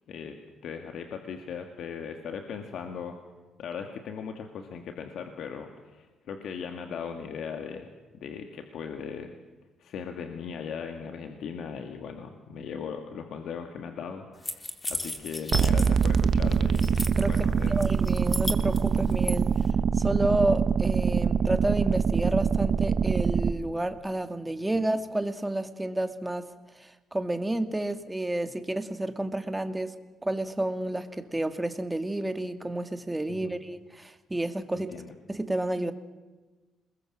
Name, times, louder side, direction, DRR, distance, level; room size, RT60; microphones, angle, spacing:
voice 1, 0.6-3.2 3.6-7.9 8.2-9.3 9.8-17.7 24.7-24.8 33.3-33.6 34.7-35.1, left 6 dB, 70° left, 5 dB, 2.2 m, -38 dB
sound 1, 14.4-16.2 16.5-17.4 17.8-19.4, left 2 dB, 20° left, 2.7 m, -34 dB
sound 2, 15.5-23.5, right 6 dB, 55° right, 1.2 m, -24 dB
voice 2, 17.7-19.5 20.0-26.5 26.8-29.9 30.2-34.9 35.3-35.9, right 1 dB, 10° right, 8 dB, 2.2 m, -30 dB
28.0 x 21.5 x 7.5 m, 1.2 s
cardioid pair, 90°, 0 cm